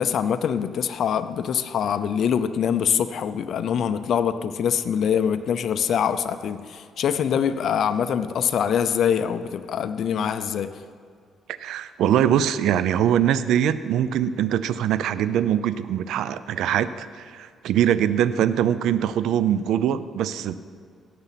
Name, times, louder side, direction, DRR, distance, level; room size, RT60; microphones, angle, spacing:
voice 1, 0.0-10.7, left 8 dB, 65° left, 10 dB, 0.6 m, -24 dB
voice 2, 11.6-20.5, right 10 dB, 80° right, 14 dB, 0.4 m, -22 dB
17.0 x 6.7 x 5.9 m, 2.2 s
cardioid pair, 90°, 0 cm